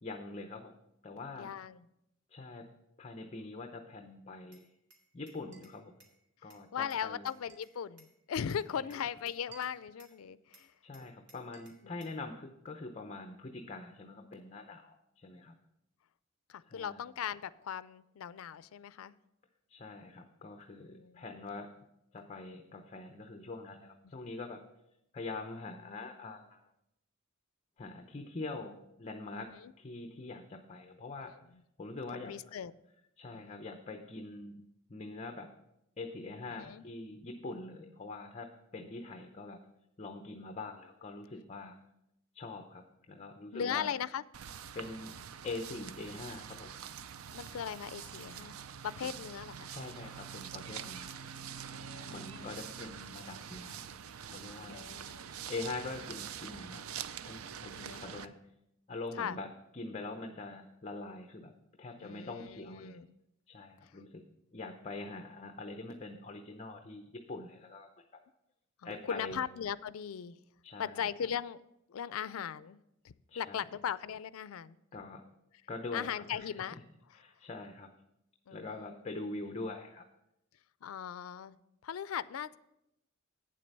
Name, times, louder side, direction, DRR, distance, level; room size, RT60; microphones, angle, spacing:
voice 1, 0.0-0.7 1.0-1.5 2.3-2.7 3.0-4.7 5.1-5.9 6.4-7.3 10.8-15.5 16.7-17.0 19.7-21.7 22.1-24.6 25.1-26.6 27.8-29.5 29.8-31.3 31.8-32.5 33.2-34.5 34.9-35.5 36.0-39.6 40.0-41.8 42.3-43.9 44.7-45.1 45.4-46.7 49.0-49.1 49.7-51.2 52.1-53.8 54.2-54.8 55.5-56.8 57.2-58.4 58.9-61.5 61.8-63.0 63.5-64.2 64.5-68.2 68.8-69.4 70.6-71.1 73.3-73.7 74.9-75.2 75.7-76.8 77.1-77.9 78.5-80.1, left 3 dB, 30° left, 5 dB, 0.7 m, -44 dB
voice 2, 1.3-1.9 6.4-10.7 11.8-12.2 16.5-19.1 20.8-21.2 29.3-29.7 31.2-31.3 32.1-32.7 33.3-33.6 36.6-36.8 43.5-44.2 47.3-48.5 48.8-49.7 51.7-52.6 54.7-55.3 57.8-58.0 59.2-59.4 62.0-63.1 63.8-63.9 68.8-70.4 70.8-71.6 71.9-72.8 73.0-74.8 75.9-76.8 78.5-78.9 80.8-81.6 81.8-82.6, left 8 dB, 80° left, 17 dB, 0.4 m, -39 dB
Glass, 4.5-6.2 6.5-8.1 8.5-10.2 10.5-12.2, right 4 dB, 60° right, 2.2 m, -60 dB
sound 1, 44.3-58.3, right 8 dB, 85° right, 0.5 m, -45 dB
8.8 x 7.6 x 5.3 m, 0.84 s
head